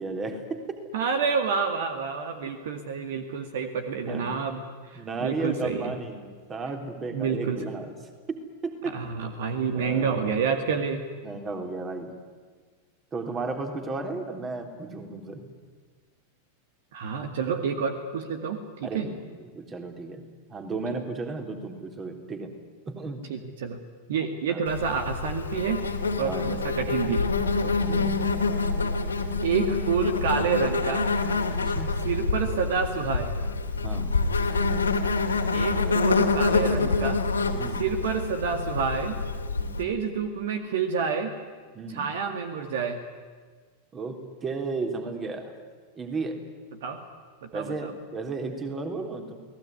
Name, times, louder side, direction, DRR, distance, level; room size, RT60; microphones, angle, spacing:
voice 1, 0.0-0.8 4.1-4.3 5.0-7.9 8.3-9.0 9.7-10.5 11.2-12.1 13.1-15.5 18.8-22.5 22.9-23.3 24.5-24.6 26.2-26.5 27.6-28.3 31.5-32.1 33.8-34.3 37.5-37.9 39.6-39.9 41.7-42.1 43.9-45.5 46.0-46.4 47.5-49.4, right 3 dB, 20° right, 5 dB, 3.7 m, -34 dB
voice 2, 0.9-4.6 4.9-5.9 7.1-7.6 8.9-11.0 16.9-19.1 23.3-23.8 24.1-25.8 26.2-27.3 28.0-28.1 29.4-31.1 32.0-33.3 35.5-37.2 37.8-39.2 39.8-41.3 41.9-43.0 46.8-47.0 47.4-47.9, right 6 dB, 55° right, 7 dB, 2.1 m, -28 dB
Insect, 24.7-39.8, left 3 dB, 75° left, 2.5 m, -26 dB
29.5 x 19.0 x 9.6 m, 1.5 s
figure-of-eight pair, 90°, 0 cm